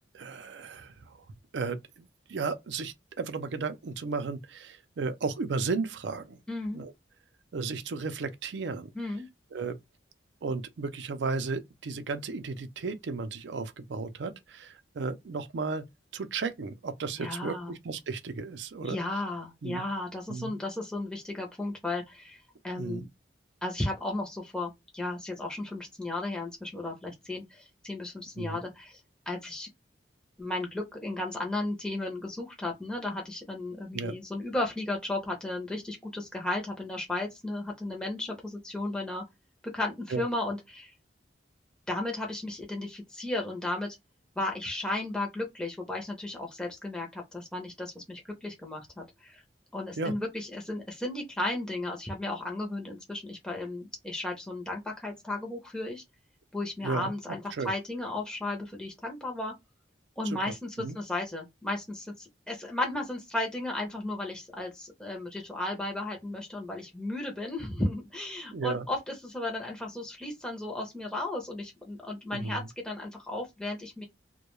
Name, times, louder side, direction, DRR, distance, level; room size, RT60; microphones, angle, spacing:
voice 1, 0.1-1.3 1.5-6.4 6.7-6.9 7.5-8.9 9.5-9.8 10.4-15.8 16.1-19.0 19.6-19.8 20.3-20.6 22.8-23.0 28.4-28.6 33.9-34.2 40.1-40.2 50.0-50.1 56.8-57.1 57.6-57.7 60.2-61.0 68.5-68.9 72.3-72.7, right 4 dB, 75° right, 0.5 m, -34 dB
voice 2, 6.5-6.8 8.9-9.3 17.2-17.7 18.8-23.1 23.6-29.0 29.3-29.7 30.4-39.2 39.7-40.9 41.9-44.0 44.4-49.4 49.7-56.0 56.5-59.5 60.2-74.0, left 2 dB, 5° left, 0.5 m, -34 dB
2.2 x 2.2 x 2.9 m
head